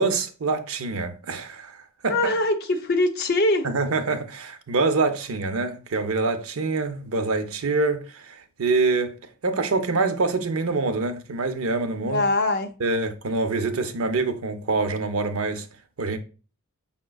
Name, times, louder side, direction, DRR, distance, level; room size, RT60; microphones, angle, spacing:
voice 1, 0.0-1.8 2.0-2.1 3.6-9.2 9.4-12.2 12.8-15.7 16.0-16.2, right 3 dB, 70° right, 0.6 m, -25 dB
voice 2, 2.1-3.7 12.1-12.7, left 2 dB, 45° left, 0.6 m, -22 dB
5.7 x 3.7 x 2.3 m
head